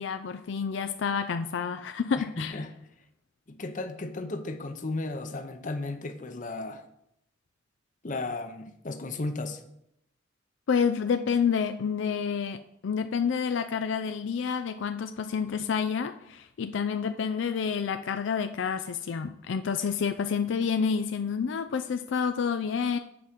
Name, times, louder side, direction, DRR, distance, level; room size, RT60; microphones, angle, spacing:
voice 1, 0.0-2.5 10.7-23.0, left 6 dB, 75° left, 0.4 m, -29 dB
voice 2, 2.4-2.7 3.5-6.8 8.0-9.6, left 2 dB, 40° left, 0.7 m, -34 dB
7.9 x 4.9 x 6.1 m
head